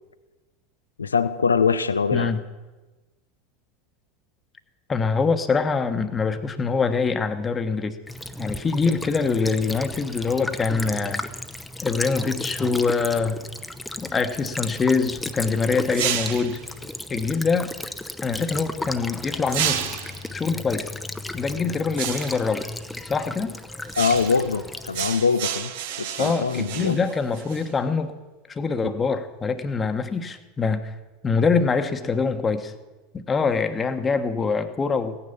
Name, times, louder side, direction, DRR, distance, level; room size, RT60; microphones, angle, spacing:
voice 1, 1.0-2.3 24.0-25.7 26.0-27.0, left 5 dB, 85° left, 13 dB, 0.5 m, -23 dB
voice 2, 4.9-7.9 8.4-11.3 11.8-13.4 14.0-16.6 17.1-17.7 18.2-20.9 21.3-22.7 23.1-23.5 26.2-28.1 28.5-30.9 31.2-32.7 33.1-35.2, left 4 dB, 25° left, 9 dB, 1.2 m, -24 dB
Child speech kid speaking / Bird vocalization bird call bird song / Stream, 8.1-25.1, left 1 dB, 5° left, 0.8 m, -34 dB
sound 1, 15.9-16.6 19.5-20.2 22.0-22.5 23.9-24.5 24.9-27.7, right 10 dB, 65° right, 1.1 m, -30 dB
16.0 x 9.9 x 7.0 m, 1.2 s
figure-of-eight pair, 80°, 0 cm